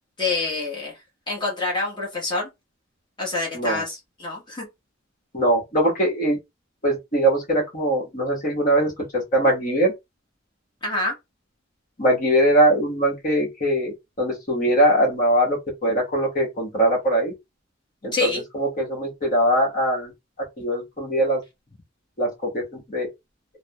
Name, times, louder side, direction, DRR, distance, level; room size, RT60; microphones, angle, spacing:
voice 1, 0.2-1.0 1.3-2.5 3.2-4.7 10.8-11.1 18.1-18.4, left 3 dB, 25° left, 1.1 m, -27 dB
voice 2, 5.3-6.4 6.8-9.9 12.0-17.3 18.0-20.1 20.6-21.4 22.2-22.6 22.9-23.1, right 1 dB, 45° left, 1.2 m, -21 dB
3.4 x 2.1 x 2.2 m
head